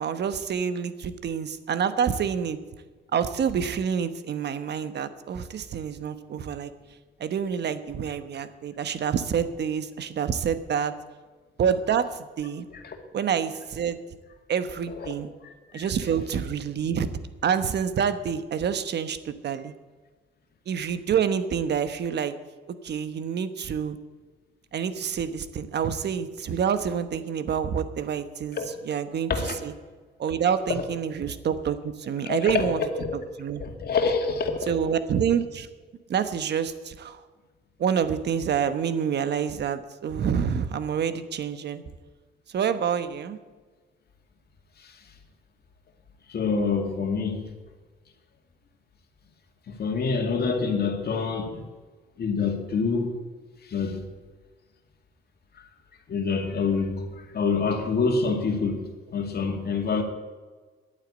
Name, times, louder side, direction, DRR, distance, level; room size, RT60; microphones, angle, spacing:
voice 1, 0.0-2.6 3.1-6.7 7.2-10.9 11.6-12.7 13.1-14.0 14.5-15.3 15.7-17.1 17.4-19.7 20.7-22.3 22.7-24.0 24.7-28.6 28.8-29.3 29.6-29.7 30.2-32.8 33.4-33.6 34.7-35.7 36.1-37.2 37.8-41.8 42.5-43.4, right 7 dB, 60° right, 1.1 m, -27 dB
voice 2, 15.4-15.9 28.5-28.7 29.3-29.6 32.2-33.1 33.6-34.7 44.8-45.0 46.3-47.5 49.7-51.6 52.2-53.1 53.6-54.1 56.1-60.0, left 4 dB, 55° left, 2.2 m, -27 dB
11.0 x 9.1 x 8.7 m
cardioid pair, 90°, 20 cm